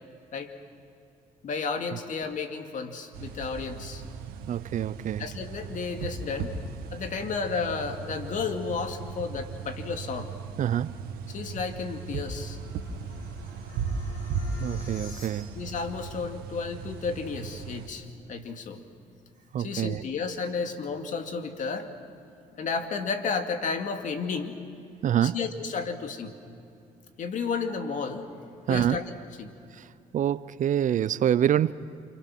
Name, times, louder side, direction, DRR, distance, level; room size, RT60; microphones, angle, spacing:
voice 1, 1.4-4.0 5.2-6.5 6.9-10.3 11.3-12.6 15.5-18.8 19.6-21.9 22.6-24.6 25.2-26.3 27.2-28.3 28.7-29.0 29.4-29.5, left 5 dB, 55° left, 2.4 m, -32 dB
sound 1, 3.1-17.9, right 5 dB, 80° right, 2.0 m, -37 dB
voice 2, 4.5-5.2 10.6-10.9 14.6-15.6 19.5-20.0 25.0-25.4 28.7-29.0 30.1-31.7, right 10 dB, 55° right, 0.7 m, -26 dB
sound 2, 10.8-15.8, left 2 dB, 80° left, 6.9 m, -49 dB
28.0 x 26.0 x 6.3 m
supercardioid pair, 65°, 16 cm